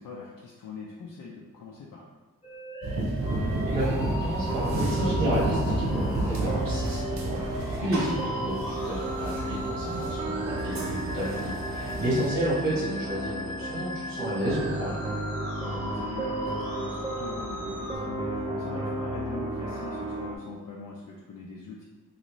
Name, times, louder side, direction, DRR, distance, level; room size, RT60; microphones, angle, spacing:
voice 1, 0.0-2.1 7.8-8.1 11.9-12.1 15.6-21.8, left 4 dB, 75° left, -3 dB, 0.5 m, -41 dB
sound 1, 2.4-18.0, equal, 20° left, 0.9 m, -39 dB
sound 2, 2.8-12.3, right 2 dB, 55° right, 0.8 m, -31 dB
sound 3, 3.2-20.4, right 1 dB, 15° right, 0.4 m, -34 dB
voice 2, 3.3-15.0, right 1 dB, 80° right, -7 dB, 1.2 m, -31 dB
3.2 x 2.6 x 3.0 m, 1.2 s
wide cardioid pair, 100°, 33 cm